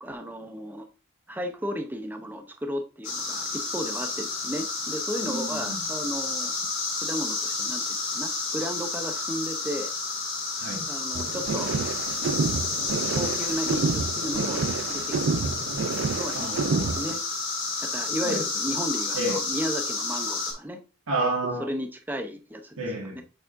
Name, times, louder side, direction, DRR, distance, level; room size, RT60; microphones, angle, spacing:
voice 1, 0.0-0.9 1.3-6.5 7.0-9.9 10.9-11.7 13.1-15.6 16.1-17.2 17.8-20.8 21.6-22.8 23.1-23.2, equal, 10° right, 0.6 m, -34 dB
sound 1, 3.0-20.5, left 3 dB, 60° left, 3.1 m, -30 dB
voice 2, 5.2-5.8 10.6-10.9 15.4-15.8 16.3-17.0 18.2-18.4 19.1-19.4 21.1-21.7 22.8-23.2, right 2 dB, 80° right, 1.6 m, -30 dB
sound 2, 11.1-17.2, right 4 dB, 60° right, 0.4 m, -29 dB
8.4 x 4.8 x 2.6 m
head